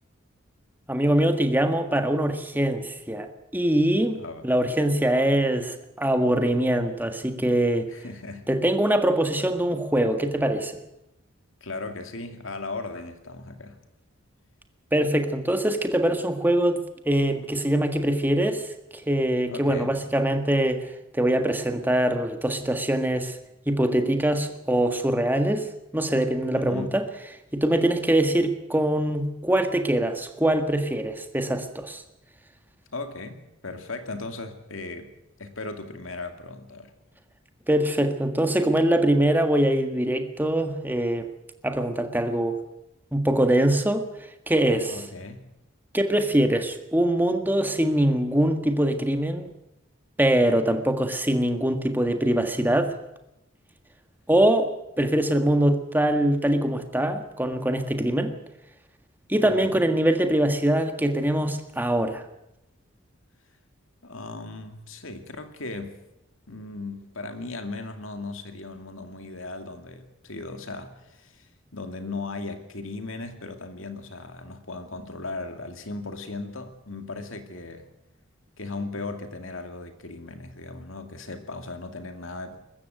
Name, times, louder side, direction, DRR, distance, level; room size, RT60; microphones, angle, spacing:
voice 1, 0.9-3.3 3.5-7.9 8.5-10.8 14.9-18.7 19.1-20.8 21.1-23.4 23.7-27.0 27.5-32.0 37.7-41.3 41.6-42.6 43.1-44.1 44.5-45.0 45.9-49.4 50.2-52.9 54.3-54.7 55.0-58.4 59.3-62.2, right 1 dB, 10° right, 6 dB, 1.7 m, -23 dB
voice 2, 7.9-8.5 11.6-13.8 19.5-20.0 26.5-27.0 32.9-35.1 35.4-36.9 44.9-45.5 59.4-59.9 64.0-66.0 66.5-77.9 78.6-82.6, left 3 dB, 70° left, 6 dB, 2.4 m, -37 dB
21.0 x 14.5 x 9.3 m, 0.88 s
head